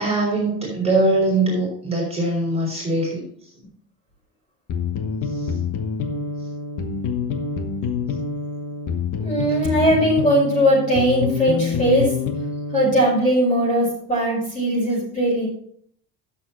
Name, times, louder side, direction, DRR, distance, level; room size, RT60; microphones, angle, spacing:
voice 1, 0.0-3.2 5.3-5.5, right 2 dB, 15° right, -6 dB, 4.8 m, -22 dB
sound 1, 4.7-13.1, left 5 dB, 50° left, 1.3 m, -26 dB
voice 2, 9.2-12.2 12.7-15.5, equal, 20° left, -4 dB, 5.0 m, -19 dB
12.0 x 7.4 x 4.4 m, 0.63 s
cardioid pair, 170°, 39 cm